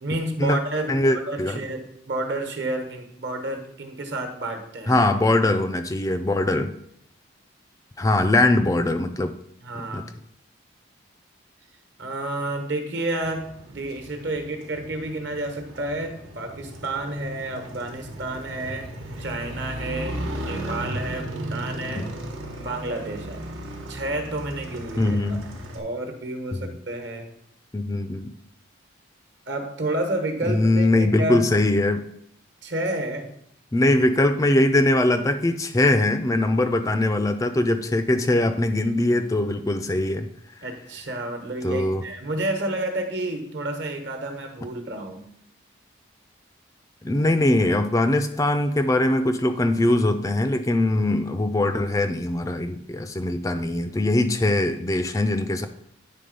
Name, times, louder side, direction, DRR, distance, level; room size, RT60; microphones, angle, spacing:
voice 1, 0.0-5.1 9.6-10.1 12.0-18.9 19.2-22.1 22.6-23.5 23.9-25.4 25.7-27.3 29.5-31.5 32.6-33.3 40.6-45.3, right 1 dB, 60° right, 5 dB, 1.2 m, -30 dB
voice 2, 0.9-1.6 4.9-6.7 8.0-9.3 9.9-10.0 22.0-22.1 25.0-25.4 26.5-26.7 27.7-28.3 30.5-32.0 33.7-40.3 41.6-42.0 47.0-55.7, left 1 dB, 15° left, 9 dB, 0.3 m, -21 dB
Motorcycle, 13.2-25.8, right 1 dB, 85° right, 1.3 m, -35 dB
9.4 x 3.5 x 5.3 m, 0.73 s
head